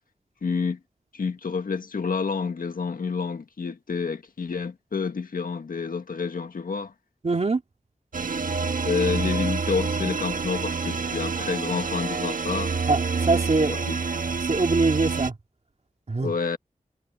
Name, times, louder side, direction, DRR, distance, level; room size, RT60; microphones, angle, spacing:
voice 1, 0.4-0.8 1.1-6.9 8.8-12.8 13.7-14.0 16.2-16.6, left 5 dB, 90° left, 1.7 m, -29 dB
voice 2, 7.2-7.6 12.9-13.0 13.3-13.8 14.5-15.3 16.1-16.3, right 3 dB, 50° right, 2.4 m, -23 dB
sound 1, 8.1-15.3, right 4 dB, 75° right, 1.4 m, -27 dB
wide cardioid pair, 85°, 14 cm